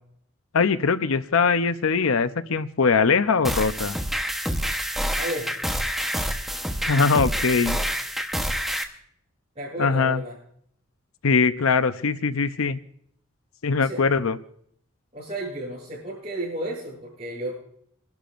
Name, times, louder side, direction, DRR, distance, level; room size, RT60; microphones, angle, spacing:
voice 1, 0.5-4.0 6.9-7.8 9.8-10.2 11.2-12.8 13.6-14.4, left 5 dB, 85° left, 12 dB, 0.7 m, -21 dB
sound 1, 3.4-8.8, equal, ahead, 1.0 m, -27 dB
voice 2, 5.2-5.5 7.7-7.8 9.5-10.4 13.8-14.0 15.1-17.5, right 1 dB, 30° right, -11 dB, 8.0 m, -32 dB
28.0 x 12.0 x 2.6 m, 0.65 s
head